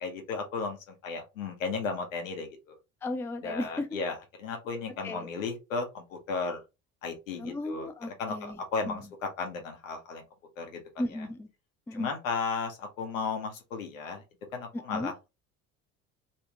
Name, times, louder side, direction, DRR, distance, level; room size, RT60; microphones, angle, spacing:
voice 1, 0.0-2.8 3.4-6.6 7.0-7.9 8.2-10.2 10.6-10.8 11.9-14.2 14.5-15.3, left 4 dB, 75° left, 1.1 m, -35 dB
voice 2, 3.0-3.9 5.0-5.3 7.4-9.1 11.0-11.5 11.9-12.1 14.7-15.1, left 1 dB, 5° left, 0.4 m, -35 dB
3.5 x 2.5 x 2.9 m
figure-of-eight pair, 55°, 40 cm